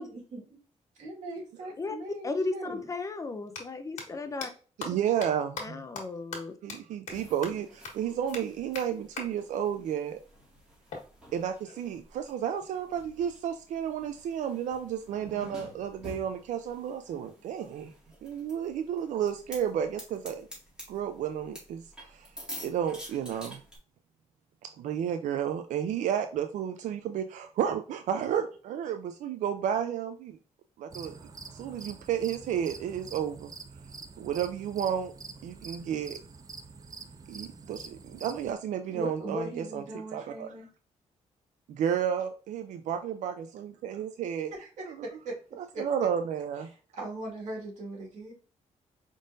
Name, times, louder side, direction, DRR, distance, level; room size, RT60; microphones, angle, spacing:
voice 1, 0.0-0.6 1.0-2.9 38.9-40.7 44.6-45.3 45.7-45.8 46.9-48.3, right 1 dB, 70° right, -2 dB, 1.9 m, -39 dB
voice 2, 2.2-4.5 5.6-6.5, left 3 dB, 25° left, 8 dB, 0.5 m, -35 dB
sound 1, 3.4-3.6 4.0-4.1 4.4-4.5 4.8-4.9 5.2-5.3 5.6-5.7 6.0-6.1 6.3-6.4 6.7-6.8 7.1-7.2 7.4-7.5 7.8-7.9 8.3-8.4 8.8-8.9 9.2-9.3 10.9-11.9, left 4 dB, 85° left, 1.4 m, -39 dB
voice 3, 4.8-5.8 6.6-10.2 11.3-17.9 18.2-20.5 20.9-22.3 22.6-23.6 24.6-30.4 30.8-31.1 31.5-33.5 34.2-35.1 35.4-36.2 37.3-39.8 40.1-40.5 41.7-44.5 44.8-45.1 45.5-46.7, right 9 dB, 90° right, 8 dB, 0.4 m, -32 dB
sound 2, 7.1-23.8, equal, 5° right, 2.0 m, -49 dB
sound 3, 30.9-38.5, right 4 dB, 30° right, 0.5 m, -46 dB
5.0 x 3.7 x 2.6 m, 0.39 s
cardioid pair, 125°, 12 cm